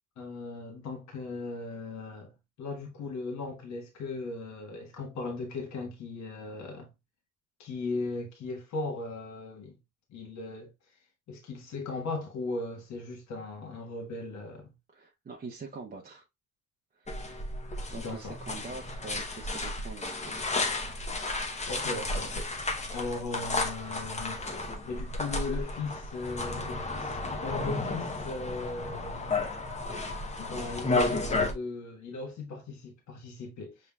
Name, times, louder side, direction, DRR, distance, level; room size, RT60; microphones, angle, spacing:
voice 1, 0.2-2.3 2.6-6.9 7.6-9.8 10.1-10.7 11.3-14.7 18.0-18.4 21.7-24.4 24.9-29.4 30.4-33.9, left 3 dB, 65° left, 1.3 m, -38 dB
voice 2, 14.9-16.3 16.9-17.1 17.9-20.4, right 4 dB, 30° right, 0.8 m, -44 dB
sound 1, 17.1-31.5, left 2 dB, 20° left, 0.8 m, -33 dB
5.5 x 3.2 x 2.3 m
cardioid pair, 90°, 30 cm